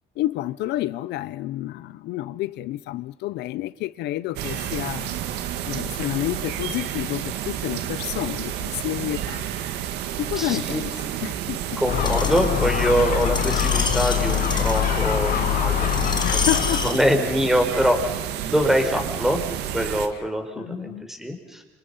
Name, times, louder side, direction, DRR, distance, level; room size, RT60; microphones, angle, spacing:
voice 1, 0.2-5.1 5.6-9.5 10.2-10.9 11.2-11.8 16.2-16.8 20.6-21.1, left 15 dB, 85° left, 1.0 m, -29 dB
sound 1, 4.4-20.1, right 10 dB, 85° right, 1.9 m, -30 dB
voice 2, 10.3-10.8 11.8-16.4 16.8-19.4 19.7-21.6, equal, ahead, 4.9 m, -24 dB
Gull seagull, 11.9-16.9, left 12 dB, 55° left, 0.9 m, -24 dB
Screech, 12.0-17.0 17.7-17.8, left 4 dB, 25° left, 2.2 m, -30 dB
29.0 x 27.0 x 5.7 m
cardioid pair, 110°, 17 cm